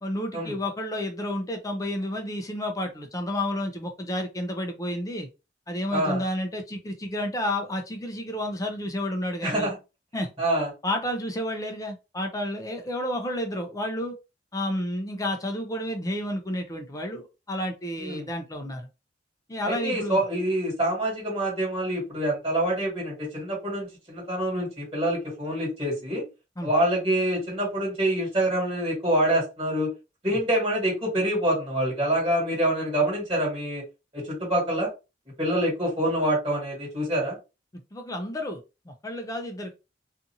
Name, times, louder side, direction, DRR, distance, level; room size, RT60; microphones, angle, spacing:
voice 1, 0.0-5.3 5.7-9.7 10.1-10.3 10.8-14.1 14.5-18.9 19.5-20.2 26.6-26.7 30.3-30.4 37.9-38.6 38.9-39.7, left 1 dB, 20° left, 0.5 m, -31 dB
voice 2, 5.9-6.2 9.4-9.7 10.4-10.7 18.0-18.2 19.6-26.2 26.6-29.9 30.2-33.8 34.1-34.9 35.4-37.4, right 1 dB, 30° right, 1.6 m, -26 dB
2.6 x 2.5 x 2.7 m
head